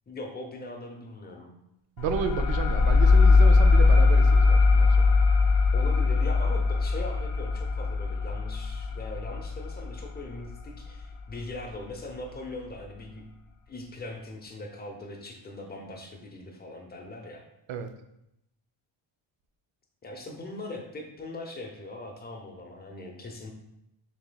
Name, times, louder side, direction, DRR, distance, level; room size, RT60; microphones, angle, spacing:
voice 1, 0.1-1.5 5.7-13.3 13.7-17.4 20.0-23.5, left 2 dB, 20° left, 2 dB, 0.7 m, -40 dB
sound 1, 2.0-11.2, left 3 dB, 70° left, 0.7 m, -21 dB
voice 2, 2.0-5.1 17.7-17.9, right 6 dB, 70° right, 8 dB, 0.6 m, -32 dB
6.9 x 2.9 x 2.3 m, 0.83 s
cardioid pair, 135°, 48 cm